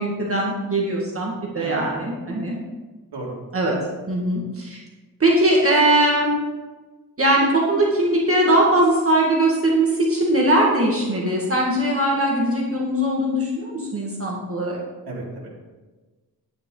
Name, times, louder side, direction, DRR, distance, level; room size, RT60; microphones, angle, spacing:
voice 1, 0.0-2.6 3.5-3.7 4.1-4.8 5.2-6.3 7.2-14.8, right 1 dB, 35° right, -3 dB, 1.9 m, -20 dB
voice 2, 1.6-2.1 3.1-3.4 15.1-15.5, right 2 dB, 90° right, -4 dB, 2.4 m, -34 dB
10.0 x 9.4 x 3.9 m, 1.3 s
wide cardioid pair, 125°, 38 cm